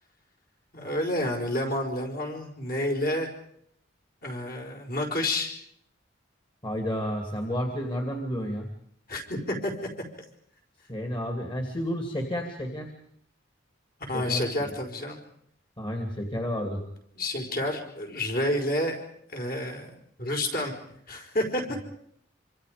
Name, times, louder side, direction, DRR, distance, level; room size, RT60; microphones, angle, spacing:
voice 1, 0.7-3.3 4.2-5.5 9.1-9.7 14.1-15.2 17.1-19.0 19.3-20.7 21.1-21.6, left 1 dB, 50° left, 1 dB, 5.0 m, -29 dB
voice 2, 6.6-8.7 10.9-12.9 14.1-14.4 15.8-16.8, equal, 25° left, 3 dB, 2.6 m, -31 dB
26.5 x 26.0 x 5.2 m, 0.69 s
head